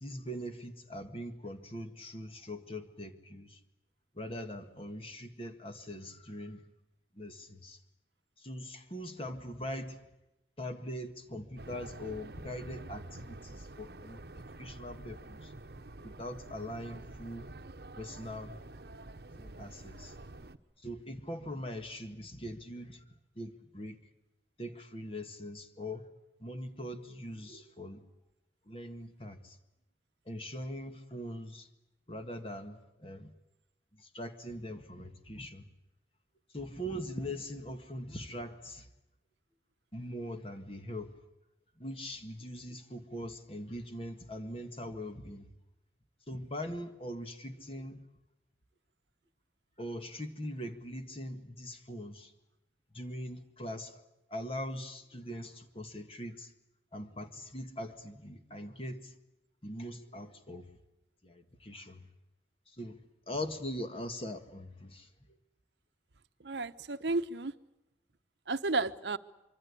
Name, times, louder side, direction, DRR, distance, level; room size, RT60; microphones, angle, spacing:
voice 1, 0.0-3.6 4.1-6.6 7.2-7.8 8.4-10.0 10.6-15.5 16.0-17.5 18.0-18.6 19.4-20.2 20.8-23.0 23.4-24.0 24.6-26.1 26.4-28.0 28.7-29.6 30.3-31.7 32.1-33.3 34.0-35.7 36.5-38.9 39.9-41.2 41.8-45.5 46.3-48.0 49.8-52.3 52.9-54.0 54.3-56.5 56.9-59.1 59.6-60.7 61.2-62.1 62.7-65.1, equal, 30° left, 1.8 m, -42 dB
sound 1, 11.6-20.6, right 2 dB, 60° right, 1.1 m, -48 dB
voice 2, 66.4-67.5 68.5-69.2, right 3 dB, 75° right, 1.0 m, -32 dB
25.0 x 25.0 x 8.5 m
head